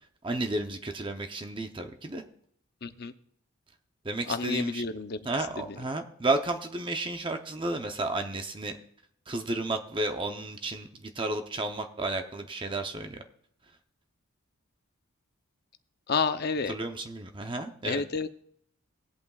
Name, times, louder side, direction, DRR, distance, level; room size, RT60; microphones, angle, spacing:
voice 1, 0.2-2.2 4.0-4.8 5.2-8.8 9.3-13.2 16.6-18.0, right 2 dB, 20° right, 5 dB, 0.7 m, -32 dB
voice 2, 2.8-3.1 4.3-5.3 5.6-5.8 16.1-16.8 17.8-18.3, left 4 dB, 50° left, 10 dB, 0.6 m, -30 dB
18.0 x 8.3 x 2.4 m, 0.65 s
head